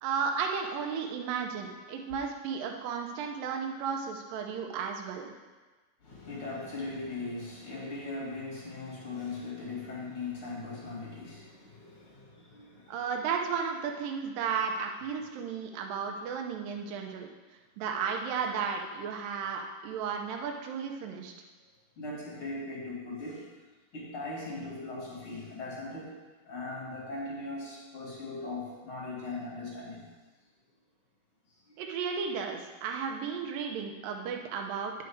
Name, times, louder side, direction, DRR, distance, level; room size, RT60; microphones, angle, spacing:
voice 1, 0.0-5.3 12.9-17.3 17.8-21.3 31.8-34.9, right 6 dB, 80° right, 2 dB, 2.5 m, -34 dB
voice 2, 6.0-13.0 22.0-23.4 23.9-26.1 26.5-30.1, left 3 dB, 45° left, -5 dB, 2.6 m, -39 dB
9.6 x 6.3 x 4.7 m, 1.3 s
omnidirectional pair, 4.0 m